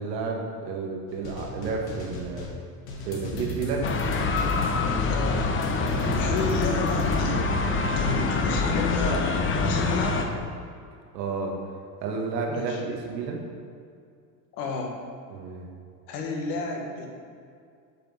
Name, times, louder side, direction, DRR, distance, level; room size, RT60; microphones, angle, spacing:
voice 1, 0.0-2.5 3.0-4.2 5.9-6.2 11.1-11.5 12.0-13.4 15.3-15.7, right 4 dB, 90° right, 1 dB, 1.7 m, -31 dB
sound 1, 1.1-7.2, left 2 dB, 50° left, 1.9 m, -37 dB
sound 2, 3.8-10.2, left 3 dB, 25° left, 0.8 m, -25 dB
voice 2, 5.0-5.4 6.2-7.4 7.9-9.4 9.6-10.3 12.5-12.8 14.5-15.0 16.1-17.1, left 3 dB, 80° left, 0 dB, 1.8 m, -31 dB
8.7 x 5.3 x 5.4 m, 2.3 s
supercardioid pair, 110°, 48 cm